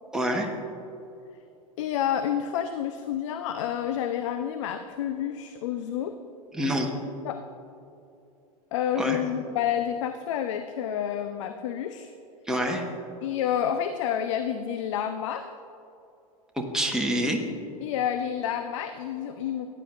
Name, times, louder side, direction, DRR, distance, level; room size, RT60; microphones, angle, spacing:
voice 1, 0.1-0.5 6.5-6.9 9.0-9.2 12.5-12.8 16.6-17.4, equal, 5° right, 0 dB, 1.4 m, -26 dB
voice 2, 1.8-6.2 7.2-7.4 8.7-12.1 13.2-15.5 17.8-19.7, left 9 dB, 55° left, 8 dB, 0.6 m, -29 dB
16.0 x 9.7 x 2.6 m, 2.7 s
figure-of-eight pair, 90°, 19 cm